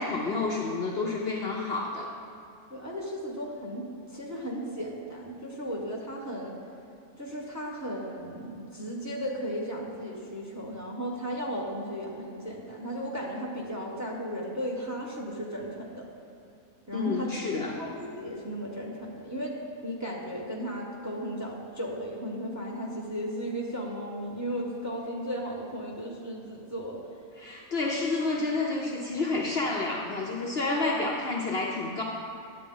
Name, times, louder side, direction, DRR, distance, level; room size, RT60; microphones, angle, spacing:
voice 1, 0.0-2.1 16.9-17.8 27.4-32.0, left 3 dB, 50° left, -2 dB, 0.9 m, -29 dB
voice 2, 2.7-6.6 7.2-16.0 16.9-17.3 17.7-19.6 19.8-27.0 30.6-30.9, equal, 15° right, -2 dB, 1.0 m, -35 dB
11.0 x 8.3 x 3.8 m, 2.7 s
omnidirectional pair, 1.6 m